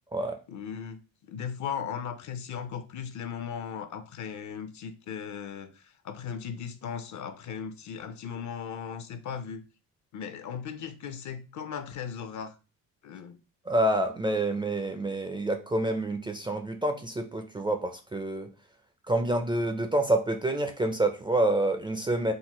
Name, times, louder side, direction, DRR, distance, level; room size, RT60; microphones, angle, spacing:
voice 1, 0.5-1.0 1.3-9.6 10.1-12.5 13.0-13.4, left 7 dB, 55° left, 0.6 m, -37 dB
voice 2, 13.7-18.5 19.1-22.3, right 1 dB, 15° right, 0.4 m, -27 dB
3.8 x 2.1 x 2.9 m
supercardioid pair, 70°, 36 cm